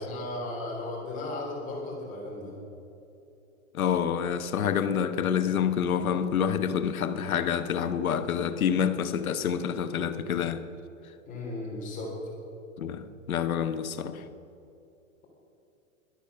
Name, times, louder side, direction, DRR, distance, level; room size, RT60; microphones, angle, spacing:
voice 1, 0.0-2.5 11.3-12.3, left 2 dB, 20° left, 3.4 m, -35 dB
voice 2, 3.7-10.6 12.8-14.2, left 8 dB, 85° left, 1.1 m, -27 dB
12.0 x 10.5 x 6.6 m
hypercardioid pair, 150°, 41 cm